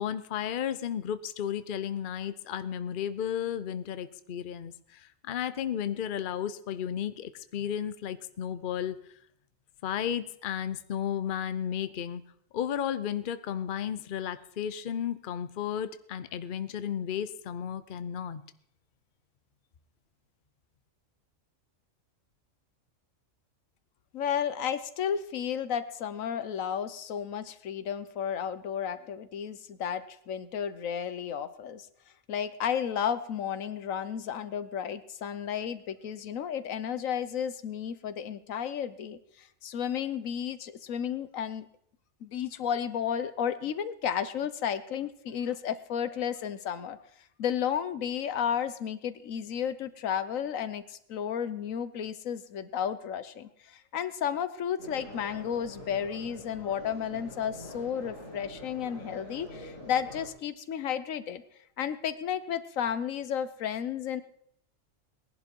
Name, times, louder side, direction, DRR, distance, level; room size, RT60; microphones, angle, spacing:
voice 1, 0.0-9.0 9.8-12.2 12.5-18.4, left 9 dB, 45° left, 13 dB, 0.8 m, -33 dB
voice 2, 24.1-31.9 32.3-41.7 42.2-47.0 47.4-61.4 61.8-64.2, left 8 dB, 85° left, 13 dB, 1.3 m, -33 dB
sound 1, 54.8-60.3, equal, 80° right, 7.6 m, -45 dB
19.5 x 11.0 x 4.5 m, 0.68 s
omnidirectional pair, 1.3 m